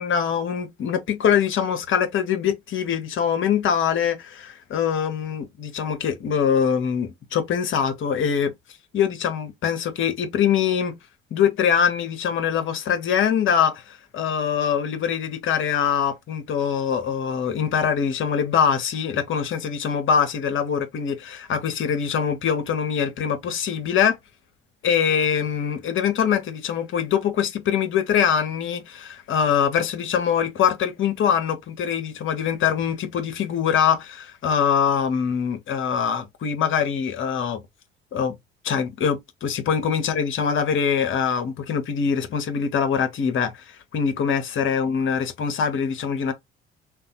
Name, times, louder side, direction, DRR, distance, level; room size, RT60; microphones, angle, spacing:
voice 1, 0.0-8.5 8.9-10.9 11.3-24.2 24.8-37.6 38.1-38.3 38.6-46.3, left 7 dB, 40° left, 0.9 m, -23 dB
2.6 x 2.3 x 3.9 m
figure-of-eight pair, 50°, 30 cm